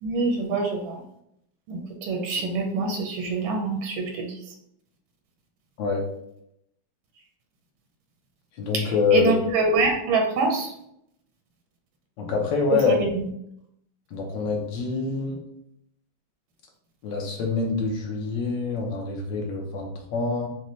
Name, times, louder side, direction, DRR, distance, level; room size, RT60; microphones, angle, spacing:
voice 1, 0.0-1.0 1.7-4.3 8.7-10.7 12.7-13.2, right 3 dB, 80° right, 2 dB, 1.5 m, -25 dB
voice 2, 8.6-9.3 12.2-13.0 14.1-15.4 17.0-20.5, left 4 dB, 70° left, 1 dB, 1.5 m, -25 dB
5.4 x 2.2 x 3.1 m, 0.75 s
omnidirectional pair, 2.2 m